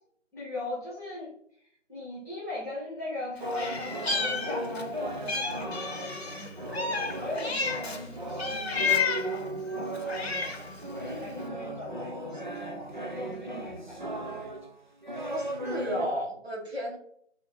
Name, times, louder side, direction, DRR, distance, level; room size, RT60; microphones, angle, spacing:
voice 1, 0.3-1.3 1.9-14.3, left 2 dB, 15° left, -7 dB, 1.3 m, -39 dB
sound 1, 3.4-16.1, right 2 dB, 40° right, 0.5 m, -37 dB
Meow, 3.5-4.9 5.3-8.0 8.4-9.4 9.9-10.8, left 5 dB, 55° left, 0.8 m, -31 dB
sound 2, 4.6-14.4, equal, 5° right, 1.3 m, -47 dB
voice 2, 15.3-17.0, equal, 55° right, -1 dB, 1.3 m, -33 dB
5.0 x 2.8 x 3.4 m, 0.66 s
figure-of-eight pair, 165°, 37 cm